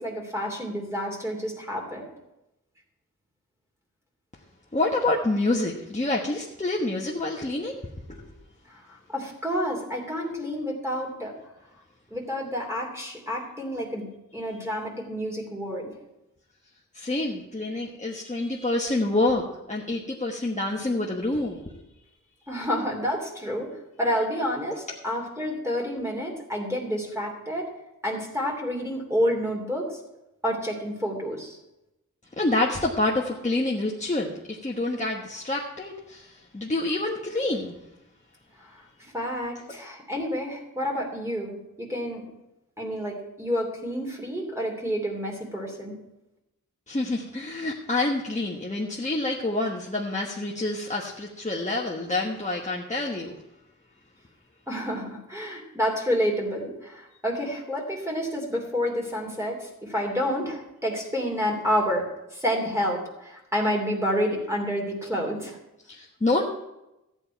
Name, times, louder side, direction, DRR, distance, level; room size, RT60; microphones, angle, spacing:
voice 1, 0.0-2.1 8.7-11.3 12.1-14.1 14.3-15.9 22.5-27.7 28.0-30.0 30.4-31.6 38.6-38.7 39.0-42.2 42.8-46.0 54.7-65.6, equal, 10° right, -1 dB, 2.9 m, -29 dB
voice 2, 4.7-7.8 8.1-8.2 16.9-21.7 32.4-37.8 46.9-53.4 65.9-66.5, left 2 dB, 25° left, -2 dB, 1.2 m, -27 dB
14.0 x 8.9 x 4.6 m, 0.91 s
wide cardioid pair, 90°, 31 cm